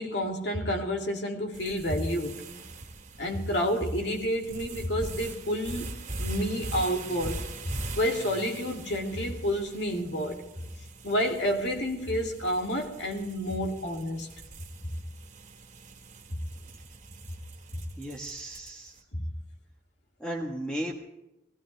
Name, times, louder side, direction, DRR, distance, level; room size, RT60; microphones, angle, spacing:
voice 1, 0.0-2.4 3.2-10.4 11.0-14.3 16.3-16.4 17.7-17.8 19.1-19.2, equal, 70° left, 2.7 m, -30 dB
sound 1, 1.5-18.9, right 2 dB, 45° right, 2.0 m, -42 dB
voice 2, 18.0-19.0 20.2-21.0, right 1 dB, 5° left, 1.3 m, -35 dB
20.5 x 15.5 x 3.4 m
head